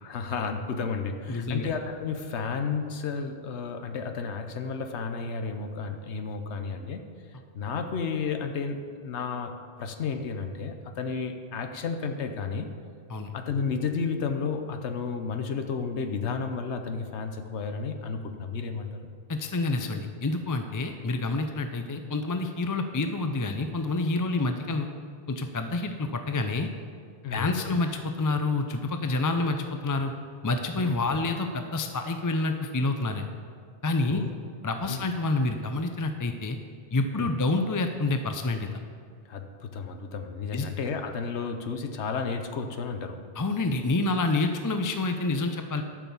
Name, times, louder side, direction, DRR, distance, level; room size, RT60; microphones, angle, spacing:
voice 1, 0.0-7.0 7.5-9.5 9.8-12.7 13.3-19.1 27.2-27.6 30.8-31.2 34.1-34.3 34.9-35.0 37.1-37.3 39.3-43.2, left 5 dB, 90° left, 6 dB, 1.1 m, -32 dB
voice 2, 1.3-1.7 13.1-13.3 19.3-24.9 25.3-26.7 27.3-30.1 30.4-33.3 33.8-34.2 34.6-36.6 36.9-38.8 40.5-40.7 43.4-45.8, left 3 dB, 30° left, 6 dB, 0.4 m, -28 dB
12.5 x 6.0 x 7.0 m, 2.1 s
omnidirectional pair, 1.1 m